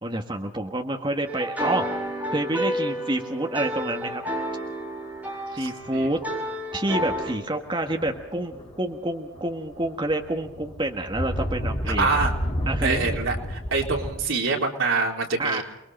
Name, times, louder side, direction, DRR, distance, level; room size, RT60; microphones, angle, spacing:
voice 1, 0.0-1.9 2.3-4.2 5.5-6.2 6.7-12.3 12.7-13.2 15.4-15.6, right 1 dB, 25° right, 3 dB, 1.5 m, -28 dB
sound 1, 1.3-7.4, equal, 10° right, 5.5 m, -30 dB
voice 2, 5.5-6.5 12.0-12.3 12.8-15.6, right 4 dB, 80° right, 0 dB, 4.1 m, -26 dB
sound 2, 5.9-6.2 6.8-7.3 7.8-9.0 9.3-14.1, equal, 30° left, 4.5 m, -31 dB
29.0 x 21.5 x 4.4 m, 0.91 s
head